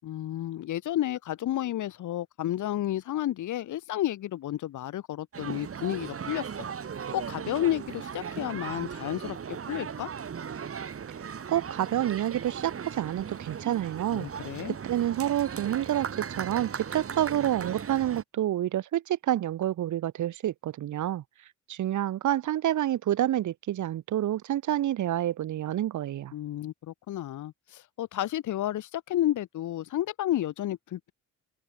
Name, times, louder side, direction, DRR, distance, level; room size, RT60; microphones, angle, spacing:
voice 1, 0.0-6.7 7.1-10.1 14.1-14.8 26.3-31.1, left 13 dB, 80° left, 5.3 m, -31 dB
sound 1, 5.3-18.2, right 7 dB, 50° right, 7.1 m, -37 dB
voice 2, 11.5-14.3 14.8-21.2 21.7-26.3, right 12 dB, 75° right, 4.1 m, -28 dB
open air
cardioid pair, 90°, 30 cm